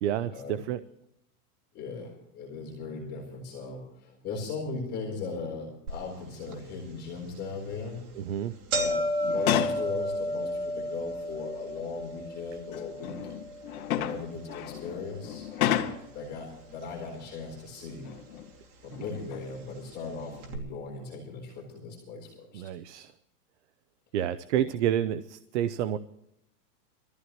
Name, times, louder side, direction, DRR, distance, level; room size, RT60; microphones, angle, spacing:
voice 1, 0.0-0.8 8.1-8.5 22.5-23.1 24.1-26.0, right 10 dB, 50° right, 14 dB, 0.7 m, -29 dB
voice 2, 1.7-8.1 8.7-13.2 13.9-15.5 16.1-18.1 18.8-22.7 24.6-24.7, left 4 dB, 20° left, -2 dB, 4.0 m, -38 dB
sound 1, 5.9-6.0 6.5-6.6 7.4-7.6 8.0-8.1 8.3-16.5 16.8-17.5 18.3-18.4 19.4-19.5 19.8-19.9 20.4-20.6, equal, 70° right, 3.0 m, -33 dB
sound 2, 9.2-9.9 11.1-11.2 12.4-16.2 18.0-18.5 18.9-19.6 20.2-20.4, left 11 dB, 65° left, 1.9 m, -32 dB
23.5 x 14.5 x 3.0 m, 0.79 s
supercardioid pair, 165°, 46 cm